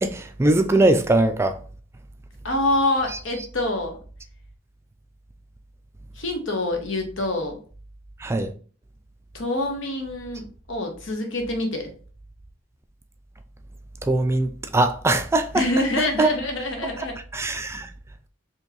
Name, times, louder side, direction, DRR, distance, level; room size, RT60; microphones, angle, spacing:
voice 1, 0.0-1.6 3.1-3.2 8.2-8.5 14.0-16.3 17.0-17.1 17.3-17.9, right 2 dB, 15° right, 0.3 m, -21 dB
voice 2, 2.4-4.0 6.2-7.6 9.3-11.9 15.5-17.2, left 1 dB, 75° left, 1.0 m, -26 dB
4.5 x 3.0 x 2.9 m
head